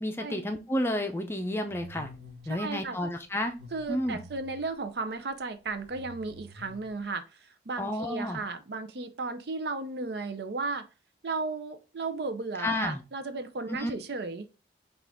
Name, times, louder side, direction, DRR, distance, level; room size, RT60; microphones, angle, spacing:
voice 1, 0.0-2.1 2.5-3.5 3.9-4.2 7.8-8.4 12.6-13.0 13.7-13.9, left 1 dB, 15° left, 5 dB, 0.5 m, -31 dB
sound 1, 1.7-2.6 3.4-4.7 5.7-7.0, left 1 dB, 90° right, 1.3 m, -49 dB
voice 2, 2.5-3.0 3.7-10.9 11.2-14.5, right 3 dB, 70° right, 9 dB, 0.6 m, -35 dB
6.0 x 2.5 x 3.4 m, 0.31 s
head